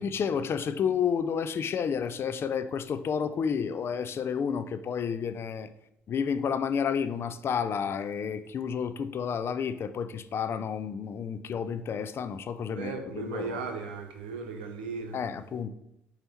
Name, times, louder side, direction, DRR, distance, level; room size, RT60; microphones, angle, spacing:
voice 1, 0.0-5.7 6.1-13.6 15.1-15.7, left 7 dB, 50° left, 0.5 m, -30 dB
voice 2, 12.7-15.2, right 4 dB, 90° right, 0.7 m, -36 dB
7.6 x 2.9 x 4.2 m
hypercardioid pair, 55°, 5 cm